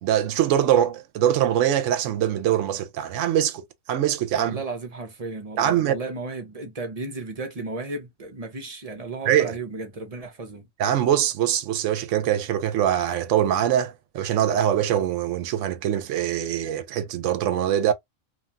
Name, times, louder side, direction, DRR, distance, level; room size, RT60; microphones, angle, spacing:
voice 1, 0.0-4.6 5.6-5.9 9.3-9.6 10.8-17.9, right 10 dB, 70° right, 0.9 m, -23 dB
voice 2, 4.3-10.7, right 3 dB, 40° right, 0.6 m, -34 dB
3.0 x 2.3 x 2.5 m
omnidirectional pair, 1.4 m